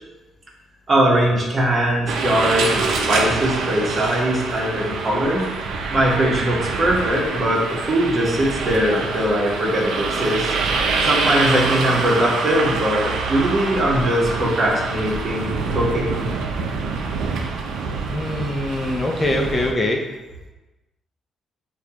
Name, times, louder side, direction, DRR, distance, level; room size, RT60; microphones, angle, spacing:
voice 1, 0.9-5.5 5.9-10.5 11.0-16.3, right 1 dB, 35° right, -3 dB, 1.3 m, -21 dB
sound 1, 2.1-19.7, right 4 dB, 80° right, 0.5 m, -25 dB
voice 2, 18.1-20.0, left 1 dB, 30° left, 1 dB, 0.6 m, -23 dB
6.2 x 2.4 x 2.9 m, 1.1 s
cardioid pair, 90°, 0 cm